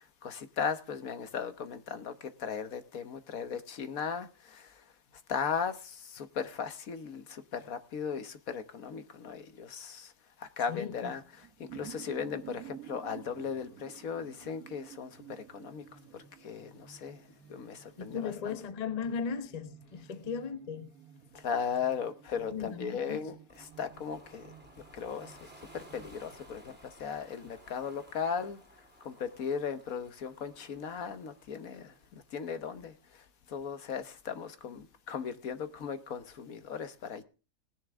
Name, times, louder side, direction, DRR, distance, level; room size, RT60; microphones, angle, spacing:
voice 1, 0.0-4.8 5.3-10.1 10.4-15.8 16.1-17.2 17.5-18.6 21.3-24.5 24.9-25.4 25.7-28.6 29.0-37.2, left 6 dB, 60° left, 1.4 m, -37 dB
voice 2, 10.7-11.1 18.0-20.9 22.5-23.2, left 6 dB, 30° left, 0.9 m, -37 dB
sound 1, 11.3-26.1, right 10 dB, 60° right, 1.7 m, -53 dB
Ocean, 23.5-32.3, equal, 5° right, 3.8 m, -57 dB
18.5 x 10.5 x 3.5 m
omnidirectional pair, 1.8 m